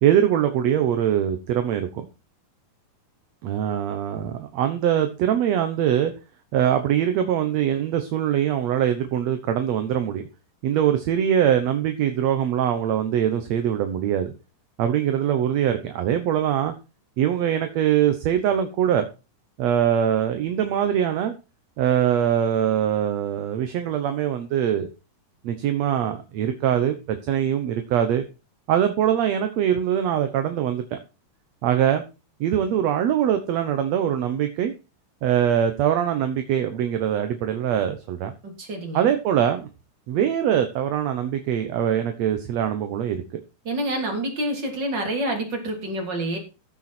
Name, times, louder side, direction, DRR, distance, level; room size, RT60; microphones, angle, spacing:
voice 1, 0.0-2.1 3.4-6.1 6.5-10.2 10.6-14.3 14.8-16.7 17.2-19.1 19.6-21.3 21.8-24.9 25.4-28.2 28.7-31.0 31.6-32.0 32.4-34.7 35.2-38.3 38.9-39.7 40.1-43.4, right 10 dB, 65° right, 8 dB, 1.9 m, -22 dB
voice 2, 38.4-39.1 43.7-46.4, right 1 dB, 30° right, 3 dB, 3.7 m, -28 dB
14.5 x 7.0 x 4.3 m, 0.30 s
omnidirectional pair, 3.9 m